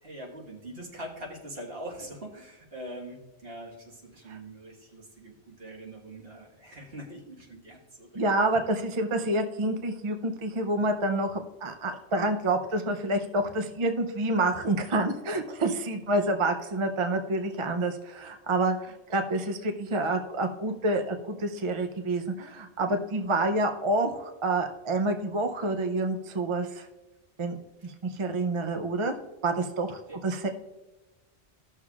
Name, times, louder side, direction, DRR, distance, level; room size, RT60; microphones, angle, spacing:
voice 1, 0.0-8.1 27.8-27.9 30.1-30.2, right 1 dB, 60° right, -2 dB, 1.8 m, -43 dB
voice 2, 8.1-26.9 27.4-27.6 27.8-29.2 29.4-30.5, right 2 dB, 35° right, 6 dB, 0.5 m, -28 dB
15.0 x 6.5 x 2.4 m, 1.1 s
omnidirectional pair, 1.1 m